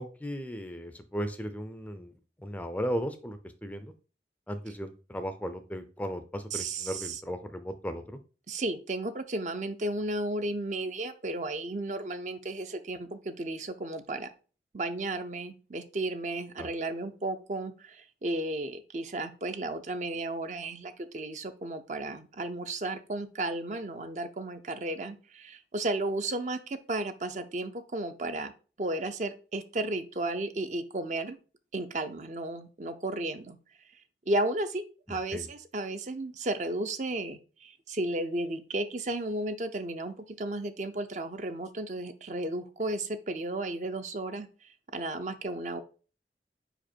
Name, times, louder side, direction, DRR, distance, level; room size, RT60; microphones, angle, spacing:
voice 1, 0.0-2.1 2.4-3.9 4.5-8.2 16.6-16.7 35.3-35.4, equal, 10° left, 10 dB, 0.4 m, -36 dB
voice 2, 6.5-7.2 8.5-14.3 14.7-28.5 28.8-31.4 31.7-33.6 34.3-34.8 35.1-45.8, right 2 dB, 40° right, 9 dB, 0.5 m, -34 dB
5.0 x 4.9 x 4.4 m, 0.36 s
head